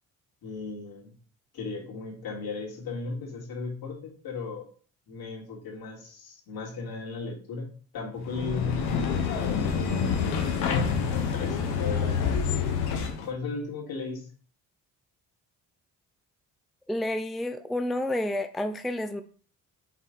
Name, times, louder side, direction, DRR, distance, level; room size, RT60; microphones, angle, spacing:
voice 1, 0.4-1.1 1.5-4.7 5.1-9.8 10.2-12.3 13.3-14.3, left 4 dB, 65° left, -2 dB, 2.7 m, -36 dB
sound 1, 8.2-13.3, left 6 dB, 90° left, 1.1 m, -27 dB
voice 2, 16.9-19.2, left 1 dB, ahead, 9 dB, 0.4 m, -30 dB
5.7 x 4.4 x 4.1 m, 0.42 s
supercardioid pair, 60°, 39 cm